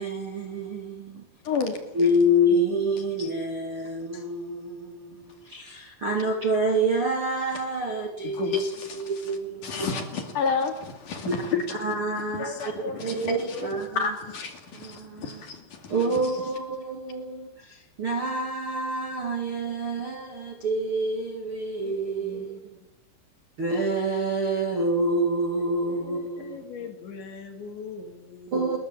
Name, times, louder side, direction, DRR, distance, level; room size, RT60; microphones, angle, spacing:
voice 1, 0.0-1.3 1.9-8.6 8.9-9.9 11.2-11.4 11.8-12.6 13.0-14.1 14.7-15.4 15.9-22.8 23.6-26.9 28.5-28.8, right 1 dB, 40° right, 2.0 m, -27 dB
voice 2, 1.4-1.8 8.3-9.1 9.6-11.8 12.1-15.9, left 4 dB, 50° left, 3.3 m, -30 dB
voice 3, 21.8-22.4 26.0-28.5, left 5 dB, 65° left, 4.8 m, -41 dB
28.0 x 21.5 x 7.3 m
omnidirectional pair, 5.7 m